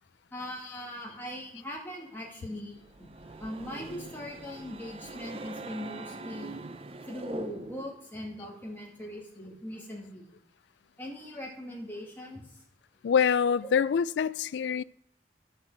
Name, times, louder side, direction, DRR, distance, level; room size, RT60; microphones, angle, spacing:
voice 1, 0.3-6.7 7.0-10.3 11.0-12.4, left 1 dB, 10° left, 2.3 m, -40 dB
sound 1, 2.8-8.0, right 3 dB, 30° right, 0.5 m, -43 dB
voice 2, 13.0-14.8, left 7 dB, 75° left, 0.3 m, -25 dB
9.6 x 6.6 x 7.3 m
head